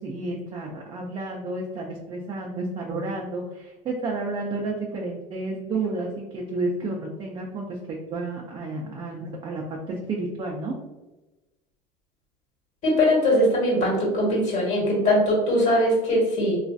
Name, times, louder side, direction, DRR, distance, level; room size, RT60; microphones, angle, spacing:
voice 1, 0.0-10.8, right 2 dB, 30° right, -1 dB, 0.5 m, -31 dB
voice 2, 12.8-16.6, left 1 dB, 50° left, -3 dB, 1.3 m, -21 dB
3.0 x 2.4 x 2.5 m, 1.1 s
supercardioid pair, 120°, 16 cm